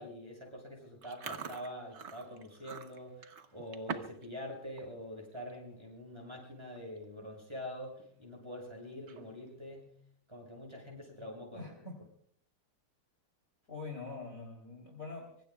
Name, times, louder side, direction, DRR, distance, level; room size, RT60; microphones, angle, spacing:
voice 1, 0.0-10.0 10.3-11.7, equal, 10° right, -1 dB, 7.1 m, -45 dB
Chewing mastication, 1.0-4.3 4.6-4.9 5.3-5.6 6.3-6.4 6.6-7.0 7.4-7.5 8.9-9.5, right 6 dB, 45° right, 0.9 m, -44 dB
voice 2, 11.5-12.0 13.7-15.3, left 3 dB, 40° left, 0 dB, 3.5 m, -44 dB
25.0 x 24.0 x 2.4 m, 0.62 s
omnidirectional pair, 2.3 m